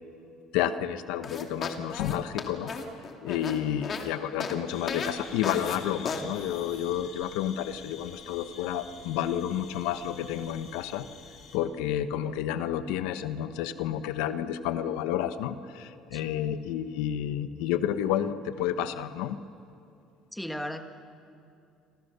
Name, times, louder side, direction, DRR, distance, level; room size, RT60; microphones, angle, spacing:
voice 1, 0.5-2.7 3.2-11.0 11.5-19.4, left 10 dB, 90° left, 10 dB, 1.1 m, -30 dB
sound 1, 1.2-4.1 4.4-4.6 4.9-5.1 5.4-5.8 6.1-6.2, left 5 dB, 35° left, 2.7 m, -34 dB
sound 2, 4.7-11.6, left 6 dB, 50° left, 5.0 m, -48 dB
voice 2, 20.3-20.8, equal, ahead, 6 dB, 1.5 m, -36 dB
29.0 x 26.5 x 6.9 m, 2.6 s
cardioid pair, 135°, 0 cm